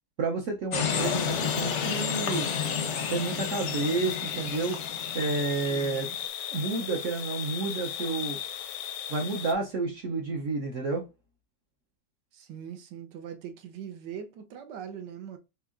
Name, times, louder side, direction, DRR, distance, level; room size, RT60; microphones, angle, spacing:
voice 1, 0.2-2.5 3.1-4.8 5.1-6.1 6.5-8.4 9.1-11.0, right 3 dB, 60° right, 0.9 m, -30 dB
sound 1, 0.7-6.3, left 7 dB, 60° left, 0.7 m, -31 dB
sound 2, 0.9-9.5, left 10 dB, 80° left, 1.2 m, -37 dB
voice 2, 5.5-6.2 12.3-15.4, right 8 dB, 80° right, 1.4 m, -42 dB
4.5 x 3.4 x 2.5 m
omnidirectional pair, 1.9 m